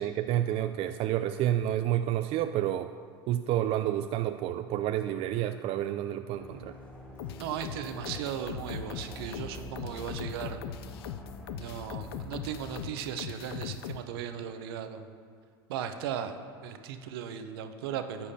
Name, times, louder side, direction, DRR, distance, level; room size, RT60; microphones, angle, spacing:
voice 1, 0.0-2.9 3.3-6.7, right 12 dB, 45° right, 8 dB, 0.3 m, -29 dB
sound 1, 6.3-12.9, left 2 dB, 10° left, 2.7 m, -45 dB
sound 2, 7.2-14.0, left 10 dB, 75° left, 0.4 m, -40 dB
voice 2, 7.4-10.7 11.5-15.1 15.7-18.3, right 8 dB, 70° right, 8 dB, 0.7 m, -37 dB
13.5 x 8.5 x 2.8 m, 2.1 s
hypercardioid pair, 85°, 13 cm